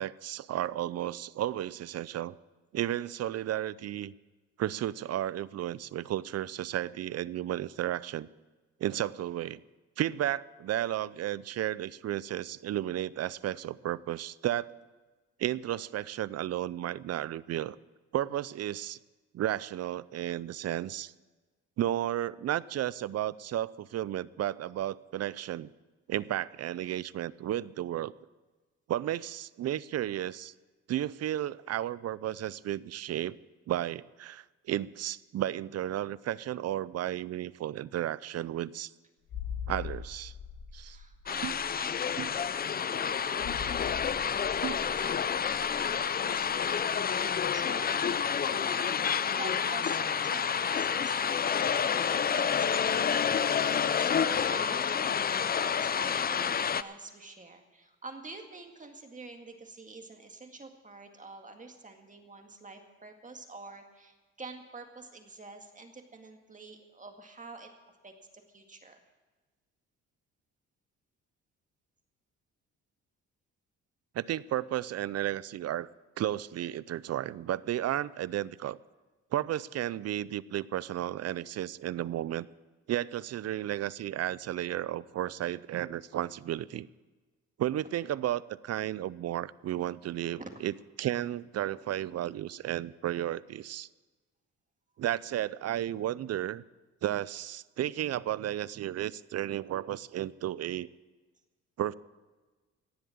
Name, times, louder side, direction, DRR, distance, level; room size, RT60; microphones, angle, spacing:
voice 1, 0.0-2.3 2.7-4.1 4.6-8.3 8.8-9.6 10.0-14.7 15.4-17.8 18.1-19.0 19.3-21.1 21.8-25.7 26.1-28.1 28.9-30.5 30.9-33.4 33.7-38.9 39.7-40.3 40.7-41.0 41.4-41.5 42.2-42.3 44.6-44.8 74.1-75.9 76.2-78.8 79.3-82.5 82.9-86.9 87.6-90.7 91.0-93.9 95.0-96.6 97.0-100.9 101.8-101.9, right 12 dB, 55° right, 20 dB, 0.5 m, -33 dB
sound 1, 39.2-47.7 47.9-48.1, left 7 dB, 90° left, 4.7 m, -43 dB
voice 2, 40.8-67.7 68.0-69.0 90.3-90.5, right 3 dB, 25° right, 4 dB, 2.0 m, -48 dB
sound 2, 41.3-56.8, left 7 dB, 30° left, 0.5 m, -29 dB
17.5 x 7.5 x 8.6 m, 1.3 s
cardioid pair, 90°, 30 cm